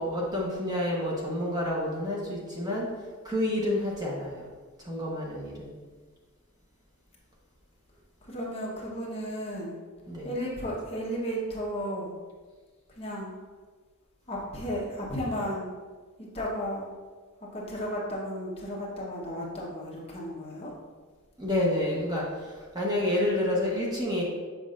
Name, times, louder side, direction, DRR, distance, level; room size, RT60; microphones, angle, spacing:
voice 1, 0.0-2.9 3.2-4.5 4.8-5.7 10.1-10.3 21.4-24.2, left 1 dB, 20° right, -4 dB, 1.0 m, -29 dB
voice 2, 8.3-9.8 10.2-12.1 13.0-13.3 14.3-15.7 16.2-16.9 17.5-20.8, equal, 25° left, -4 dB, 1.0 m, -34 dB
7.3 x 5.2 x 2.5 m, 1.4 s
head